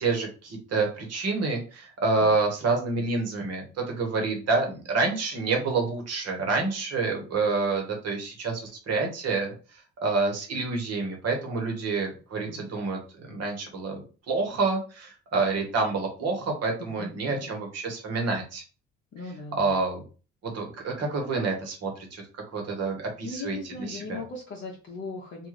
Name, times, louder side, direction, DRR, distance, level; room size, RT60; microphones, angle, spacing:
voice 1, 0.0-9.5 10.0-18.6 19.6-20.0 20.4-22.2 22.5-23.6 23.9-24.2, right 3 dB, 55° right, 2 dB, 1.3 m, -28 dB
voice 2, 16.8-17.5 19.1-19.7 23.2-25.5, left 3 dB, 40° left, -1 dB, 0.8 m, -38 dB
2.6 x 2.4 x 3.2 m, 0.35 s
supercardioid pair, 70°, 31 cm